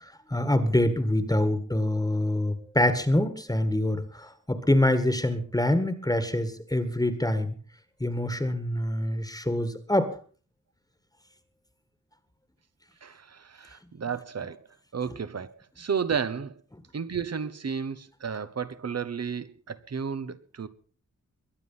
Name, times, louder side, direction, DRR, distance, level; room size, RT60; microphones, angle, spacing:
voice 1, 0.0-7.6 8.0-10.1, left 1 dB, 10° left, 1.7 m, -25 dB
voice 2, 13.0-14.7 14.9-16.6 16.9-20.7, right 6 dB, 55° right, 1.2 m, -32 dB
22.5 x 9.8 x 5.6 m
wide cardioid pair, 120°, 30 cm